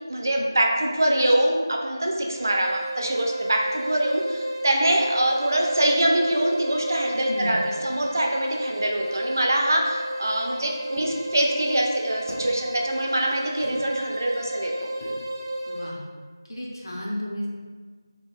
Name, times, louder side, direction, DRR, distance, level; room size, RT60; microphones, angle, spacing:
voice 1, 0.1-14.9, right 1 dB, 45° right, 0 dB, 0.4 m, -24 dB
sound 1, 2.3-16.0, right 1 dB, 70° right, 0.9 m, -33 dB
voice 2, 7.3-7.6 15.7-16.0 16.5-17.5, equal, 65° left, -5 dB, 0.6 m, -32 dB
sound 2, 11.0-11.1 12.3-12.5 13.6-13.8 15.0-15.2, left 1 dB, 20° left, 0.4 m, -39 dB
2.9 x 2.1 x 3.3 m, 1.5 s
figure-of-eight pair, 170°, 2 cm